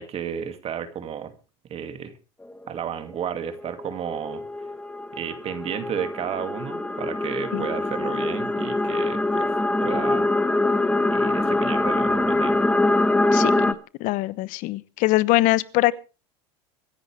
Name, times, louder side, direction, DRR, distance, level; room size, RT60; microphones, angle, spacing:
voice 1, 0.0-1.3 1.7-2.1 2.7-4.5 5.1-10.3 11.1-12.6, right 8 dB, 40° right, 2.4 m, -32 dB
sound 1, 2.4-2.7 3.6-13.7, left 2 dB, 10° left, 1.2 m, -24 dB
voice 2, 13.3-15.9, left 18 dB, 60° left, 1.1 m, -23 dB
24.5 x 11.0 x 3.4 m
supercardioid pair, 100°, 15 cm